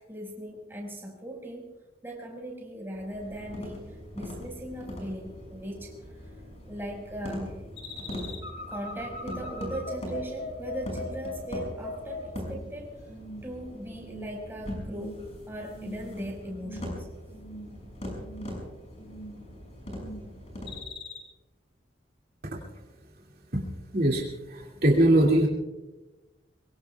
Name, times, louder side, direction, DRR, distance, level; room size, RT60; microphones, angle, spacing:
voice 1, 0.0-1.7 2.0-6.0 6.7-7.6 8.7-13.0 13.4-17.1, right 1 dB, 15° right, 0 dB, 5.1 m, -38 dB
sound 1, 2.9-20.8, equal, 35° left, 6.5 m, -41 dB
sound 2, 7.8-12.7 13.1-13.5 13.9-14.4 14.8-15.2 15.6-16.1 16.5-17.0 17.3-17.8 18.1-18.6 19.0-19.5 19.8-20.3 20.7-21.2, left 2 dB, 70° left, 3.7 m, -41 dB
voice 2, 23.9-25.5, right 1 dB, 55° right, -2 dB, 2.4 m, -22 dB
24.0 x 23.0 x 2.4 m, 1.1 s
head